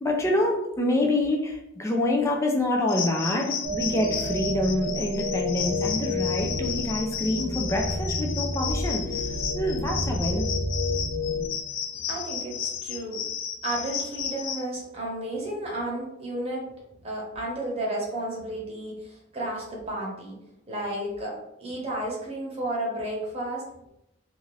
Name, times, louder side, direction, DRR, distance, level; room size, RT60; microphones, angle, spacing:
voice 1, 0.0-10.5, left 1 dB, 15° left, 0 dB, 0.4 m, -26 dB
sound 1, 2.9-14.6, left 7 dB, 80° left, 0.4 m, -33 dB
sound 2, 3.6-11.5, left 1 dB, 55° right, 1.0 m, -30 dB
voice 2, 11.9-13.2 13.6-16.7 17.0-20.4 20.7-23.9, right 1 dB, 30° right, -3 dB, 0.9 m, -32 dB
2.6 x 2.4 x 3.1 m, 0.83 s
head